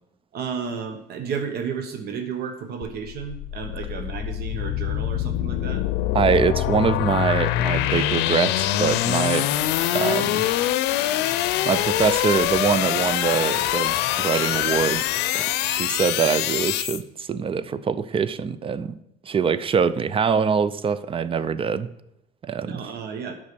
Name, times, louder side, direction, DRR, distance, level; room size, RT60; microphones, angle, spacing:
voice 1, 0.3-5.8 22.6-23.3, right 6 dB, 70° right, 6 dB, 1.1 m, -32 dB
sound 1, 2.8-17.0, left 13 dB, 90° left, 0.6 m, -24 dB
voice 2, 6.1-9.5 9.9-10.5 11.7-15.0 15.3-19.0 19.2-21.9 22.4-22.8, right 6 dB, 35° right, 15 dB, 0.5 m, -24 dB
8.4 x 5.4 x 6.8 m, 0.84 s
cardioid pair, 110°, 17 cm